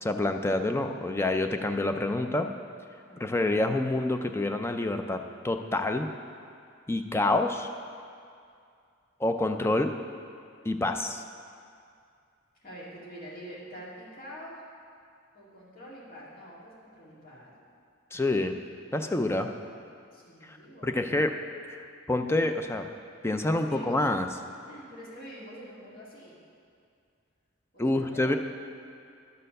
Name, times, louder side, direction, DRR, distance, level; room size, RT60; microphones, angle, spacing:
voice 1, 0.0-2.5 3.2-5.2 5.4-6.1 6.9-7.7 9.2-9.9 10.6-11.2 18.1-18.6 18.9-19.5 20.4-20.6 20.8-21.3 21.7-22.8 23.2-24.3 27.8-28.4, left 2 dB, 10° left, 6 dB, 0.4 m, -27 dB
voice 2, 12.6-14.6 15.3-17.5 19.2-19.8 20.1-21.3 23.5-24.1 24.7-26.4 27.7-28.4, equal, 45° left, -6 dB, 2.1 m, -46 dB
11.5 x 4.5 x 6.5 m, 2.3 s
head